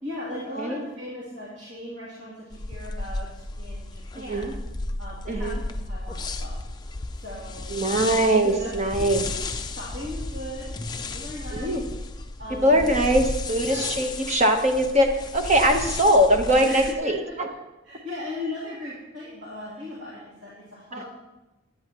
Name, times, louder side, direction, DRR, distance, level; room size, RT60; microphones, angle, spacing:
voice 1, 0.0-4.6 5.0-6.6 7.1-8.0 8.4-8.7 9.7-10.7 11.1-11.8 12.4-13.0 13.6-13.8 16.6-17.3 17.8-21.0, left 1 dB, 55° right, -7 dB, 3.0 m, -37 dB
sound 1, 2.5-16.9, left 3 dB, 20° left, 0.5 m, -34 dB
voice 2, 7.7-9.3 11.5-11.8 12.5-17.5, right 1 dB, 35° right, 4 dB, 1.1 m, -21 dB
16.5 x 10.5 x 3.0 m, 1.0 s
head